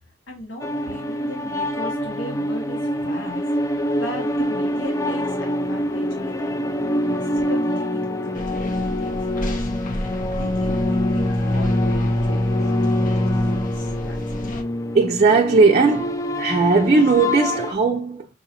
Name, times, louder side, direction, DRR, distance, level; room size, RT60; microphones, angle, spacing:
voice 1, 0.3-6.5 7.1-14.2, left 1 dB, 75° left, 1.0 m, -38 dB
sound 1, 0.6-17.7, left 1 dB, 15° left, 0.4 m, -24 dB
sound 2, 8.3-14.6, left 1 dB, 45° left, 0.7 m, -32 dB
voice 2, 14.9-18.3, right 3 dB, 35° right, 0.5 m, -17 dB
5.4 x 3.0 x 2.8 m
head